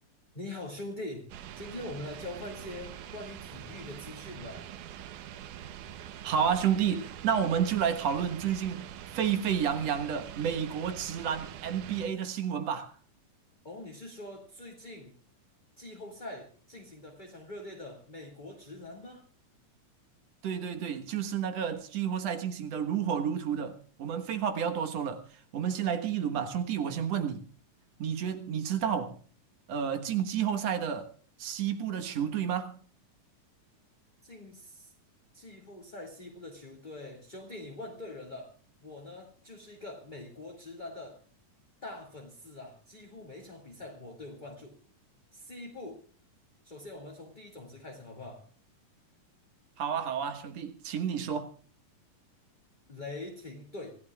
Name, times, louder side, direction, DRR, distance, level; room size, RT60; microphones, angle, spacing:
voice 1, 0.3-1.2 1.5-4.6 13.6-15.1 15.8-19.2 34.2-34.9 35.3-38.5 38.8-41.2 41.8-44.8 45.3-46.0 46.6-48.4 52.9-54.0, left 2 dB, 20° left, 1.7 m, -43 dB
sound 1, 1.3-12.1, right 10 dB, 75° right, 2.4 m, -44 dB
voice 2, 6.2-8.9 9.1-12.9 20.4-25.2 25.5-27.5 28.0-29.2 29.7-31.1 31.4-32.8 49.8-51.5, right 8 dB, 60° right, 2.3 m, -30 dB
26.5 x 15.5 x 2.4 m
omnidirectional pair, 3.8 m